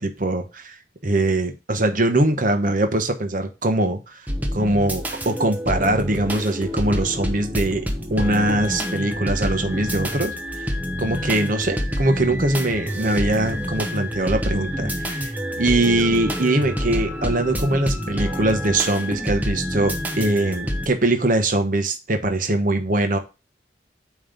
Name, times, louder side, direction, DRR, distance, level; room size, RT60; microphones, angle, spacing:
voice 1, 0.0-4.3 4.5-7.8 8.1-10.7 11.0-23.2, right 2 dB, 50° right, 7 dB, 1.0 m, -22 dB
sound 1, 4.3-20.9, equal, 10° right, 0.9 m, -27 dB
9.0 x 3.2 x 5.0 m, 0.29 s
head